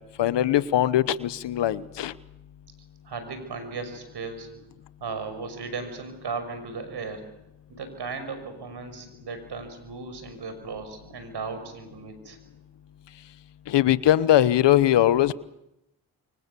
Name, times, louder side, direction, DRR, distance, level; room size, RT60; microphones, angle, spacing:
voice 1, 0.2-2.1 13.7-15.3, left 12 dB, 80° left, 16 dB, 1.1 m, -21 dB
voice 2, 3.0-4.5 5.0-7.3 7.7-12.4, right 4 dB, 70° right, 9 dB, 6.0 m, -36 dB
28.5 x 25.0 x 6.9 m, 0.85 s
cardioid pair, 50°, 42 cm